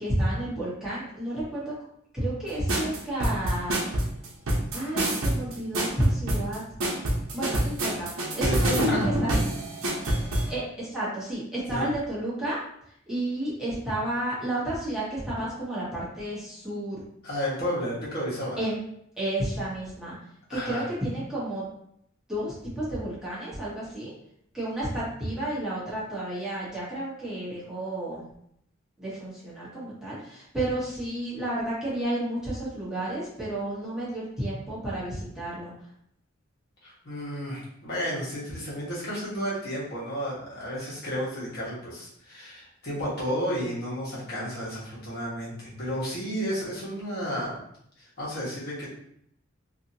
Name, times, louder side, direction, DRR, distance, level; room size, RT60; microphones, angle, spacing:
voice 1, 0.0-1.7 2.1-3.8 4.7-6.6 7.3-9.3 10.5-12.6 13.1-17.0 18.6-18.8 19.2-20.2 20.5-21.7 22.3-24.1 24.5-28.2 29.0-35.7, right 1 dB, 5° right, -9 dB, 1.1 m, -31 dB
sound 1, 2.7-10.5, right 1 dB, 85° right, 0.7 m, -26 dB
voice 2, 8.4-9.1 11.7-11.8 17.2-18.6 20.5-20.9 36.8-47.6 48.0-48.9, equal, 50° left, -8 dB, 1.2 m, -32 dB
2.7 x 2.6 x 2.7 m, 0.71 s
head